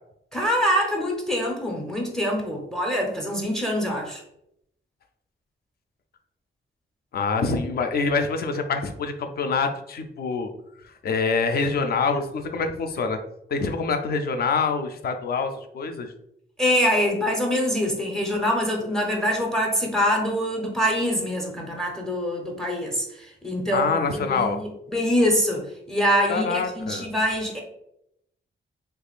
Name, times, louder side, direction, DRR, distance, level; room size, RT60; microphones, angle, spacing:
voice 1, 0.3-4.2 16.6-27.6, equal, 5° left, 1 dB, 0.6 m, -24 dB
voice 2, 7.1-10.5 11.0-13.2 13.5-16.1 23.7-24.6 26.3-27.1, left 4 dB, 50° left, 6 dB, 0.4 m, -25 dB
3.4 x 3.3 x 2.3 m, 0.77 s
wide cardioid pair, 160°, 20 cm